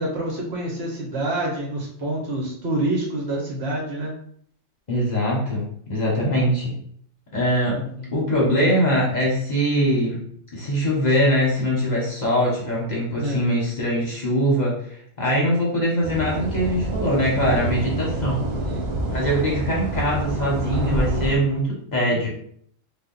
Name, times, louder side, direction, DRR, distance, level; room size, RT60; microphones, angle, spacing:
voice 1, 0.0-4.1 7.7-8.1 13.1-13.4 18.7-18.9 22.0-22.3, right 1 dB, 60° right, -2 dB, 1.0 m, -27 dB
voice 2, 4.9-6.7 7.3-7.8 8.1-10.2 10.5-18.4 19.1-22.3, equal, 40° left, -4 dB, 0.8 m, -22 dB
sound 1, 16.0-21.4, right 1 dB, 80° right, 0.3 m, -27 dB
2.8 x 2.1 x 3.7 m, 0.64 s
omnidirectional pair, 1.3 m